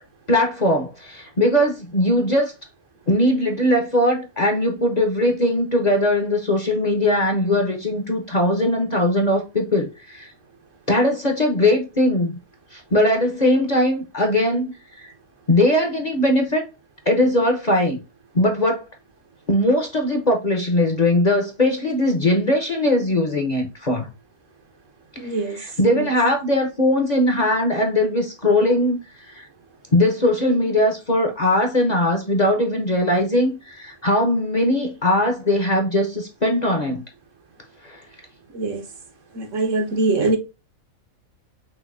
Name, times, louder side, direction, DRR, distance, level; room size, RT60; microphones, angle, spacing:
voice 1, 0.3-2.5 3.1-10.3 10.9-12.4 12.7-14.7 15.0-15.1 15.5-16.7 17.1-18.0 18.3-18.8 19.5-24.1 25.2-25.3 25.6-29.0 29.3-29.5 29.9-37.0 37.8-38.0, left 1 dB, 35° left, 0.9 m, -20 dB
voice 2, 25.2-25.6 25.9-26.1 38.5-38.8 39.3-40.4, right 2 dB, 65° right, 1.5 m, -23 dB
6.1 x 2.8 x 2.6 m
omnidirectional pair, 1.4 m